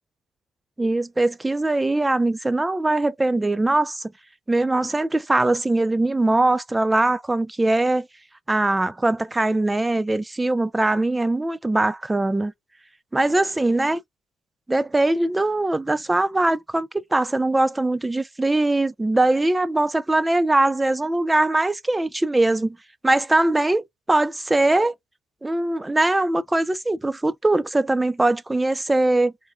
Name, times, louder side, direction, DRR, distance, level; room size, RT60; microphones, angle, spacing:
voice 1, 0.8-4.0 4.5-8.1 8.5-12.5 13.1-14.0 14.7-22.8 23.0-24.9 25.4-29.3, right 2 dB, 15° right, 0.3 m, -21 dB
3.2 x 2.1 x 2.3 m
cardioid pair, 90°, 0 cm